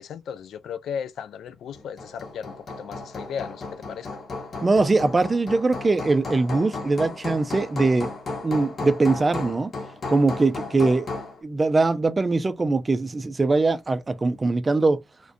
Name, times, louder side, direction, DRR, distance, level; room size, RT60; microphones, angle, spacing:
voice 1, 0.0-4.2, left 7 dB, 70° left, 0.3 m, -36 dB
Hammer, 1.7-11.4, left 3 dB, 50° left, 1.0 m, -34 dB
voice 2, 4.6-8.1 8.4-9.7 10.1-11.1 11.4-15.0, right 3 dB, 25° right, 0.4 m, -22 dB
2.3 x 2.2 x 2.5 m
supercardioid pair, 70°, 0 cm